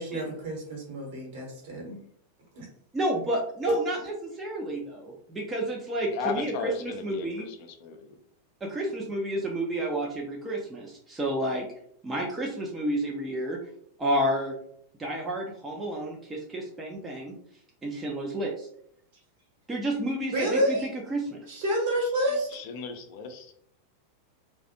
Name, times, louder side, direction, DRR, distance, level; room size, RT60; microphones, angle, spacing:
voice 1, 0.0-2.0 2.5-2.7 3.7-3.8 20.3-20.9 21.5-22.5, equal, 50° right, -1 dB, 1.0 m, -28 dB
voice 2, 2.9-7.5 8.6-11.7 12.0-13.6 14.0-14.5 15.0-17.4 17.8-18.7 19.7-21.4, right 1 dB, 15° right, -2 dB, 0.4 m, -30 dB
voice 3, 6.1-8.2 22.5-23.5, left 4 dB, 45° left, 5 dB, 0.4 m, -36 dB
2.4 x 2.1 x 2.6 m, 0.67 s
figure-of-eight pair, 90°, 0 cm